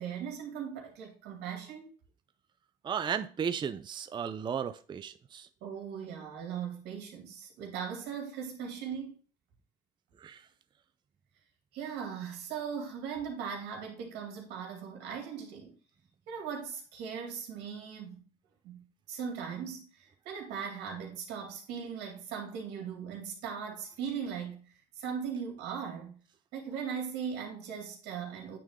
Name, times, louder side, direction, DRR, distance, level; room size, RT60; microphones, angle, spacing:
voice 1, 0.0-1.9 5.6-9.2 11.7-15.7 16.3-18.2 18.6-26.2 26.5-28.6, right 7 dB, 90° right, 2.3 m, -39 dB
voice 2, 2.8-5.5 10.2-10.5, right 7 dB, 25° right, 0.4 m, -35 dB
9.3 x 3.7 x 3.6 m
cardioid pair, 110°, 17 cm